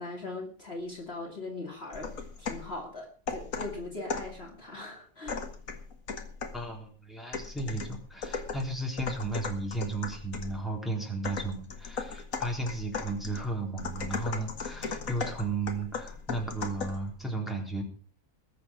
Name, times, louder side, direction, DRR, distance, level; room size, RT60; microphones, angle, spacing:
voice 1, 0.0-5.4, left 2 dB, 45° left, 1 dB, 2.6 m, -40 dB
sound 1, 1.9-2.7 3.3-4.4 5.3-6.7 7.3-10.6 11.2-17.1, left 5 dB, 65° left, 2.1 m, -37 dB
voice 2, 6.5-17.8, right 2 dB, ahead, 0 dB, 3.9 m, -34 dB
20.5 x 8.1 x 6.0 m, 0.40 s
omnidirectional pair, 1.5 m